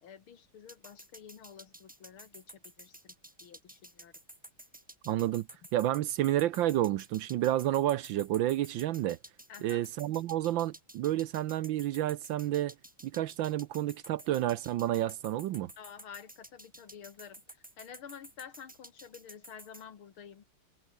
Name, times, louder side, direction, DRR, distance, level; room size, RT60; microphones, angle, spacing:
voice 1, 0.0-3.1 3.4-4.1 9.5-9.8 15.8-20.4, left 8 dB, 70° left, 2.6 m, -50 dB
sound 1, 0.7-19.8, right 1 dB, 5° right, 0.8 m, -52 dB
voice 2, 5.1-5.5 5.7-9.2 9.6-12.7 13.0-15.7, right 13 dB, 70° right, 1.3 m, -30 dB
omnidirectional pair, 2.4 m